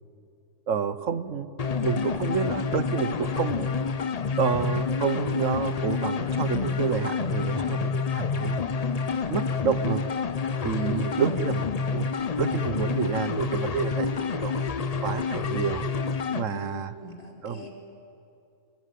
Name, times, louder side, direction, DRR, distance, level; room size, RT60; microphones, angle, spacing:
voice 1, 0.7-1.5 1.8-3.7 4.4-8.6 9.3-10.0 10.6-11.7 11.9-12.1 12.4-14.5 15.0-15.8 16.3-16.9 17.4-17.7, right 7 dB, 60° right, 13 dB, 1.3 m, -29 dB
sound 1, 1.6-16.5, left 5 dB, 50° left, 0.4 m, -28 dB
voice 2, 10.8-11.3 16.4-17.7, right 2 dB, 25° left, -1 dB, 4.1 m, -39 dB
26.5 x 21.5 x 9.2 m, 2.5 s
omnidirectional pair, 1.6 m